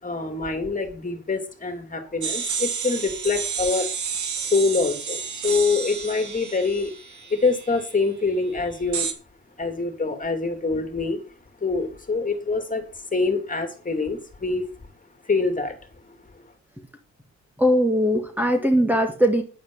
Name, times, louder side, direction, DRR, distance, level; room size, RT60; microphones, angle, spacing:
voice 1, 0.0-3.9 4.4-9.1 9.6-11.2 11.6-14.7 15.2-15.8 16.0-16.5, left 4 dB, 25° left, 2.7 m, -25 dB
sound 1, 2.2-7.9 8.9-9.1, right 6 dB, 70° right, 2.1 m, -30 dB
voice 2, 17.6-19.4, equal, 5° right, 1.9 m, -20 dB
10.0 x 8.7 x 5.6 m
cardioid pair, 90°, 30 cm